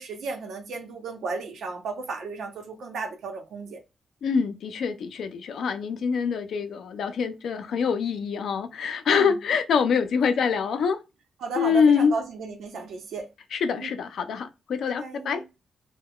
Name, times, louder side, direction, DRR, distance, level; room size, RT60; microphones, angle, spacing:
voice 1, 0.0-3.8 9.1-9.4 11.4-13.3 13.8-13.9 14.9-15.5, right 4 dB, 80° right, 0.8 m, -34 dB
voice 2, 4.2-11.0 11.6-12.1 13.5-15.5, left 6 dB, 75° left, 0.4 m, -25 dB
2.3 x 2.2 x 3.5 m
wide cardioid pair, 130°, 0 cm